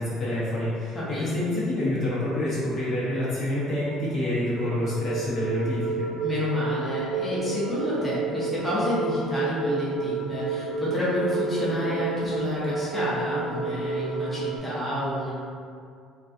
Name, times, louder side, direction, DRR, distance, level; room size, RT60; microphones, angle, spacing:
voice 1, 0.0-6.1, left 1 dB, 45° left, -9 dB, 0.9 m, -27 dB
sound 1, 4.6-14.6, right 4 dB, 65° right, 0.3 m, -31 dB
voice 2, 6.2-15.3, left 1 dB, 5° left, -11 dB, 0.7 m, -29 dB
2.4 x 2.3 x 2.5 m, 2.3 s
cardioid pair, 135°, 0 cm